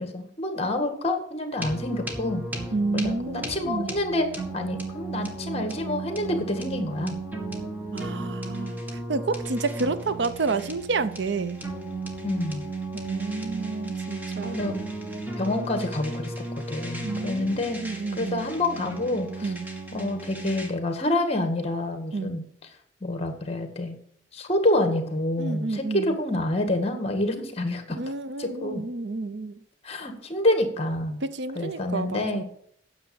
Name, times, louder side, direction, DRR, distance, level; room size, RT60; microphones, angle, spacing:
voice 1, 0.0-2.4 2.9-7.2 12.2-12.6 14.4-14.8 15.4-16.3 16.7-17.8 18.2-19.5 19.9-22.4 23.0-24.0 24.3-28.0 28.4-28.8 29.8-31.2 31.6-32.4, left 1 dB, 35° left, 1.8 m, -27 dB
sound 1, 1.6-20.7, right 2 dB, 10° right, 1.9 m, -35 dB
voice 2, 2.7-4.0 7.9-11.6 12.9-14.7 17.0-18.4 19.4-19.7 22.1-22.4 25.4-26.2 28.0-29.6 31.2-32.4, right 3 dB, 70° right, 0.7 m, -30 dB
9.6 x 7.2 x 7.0 m
head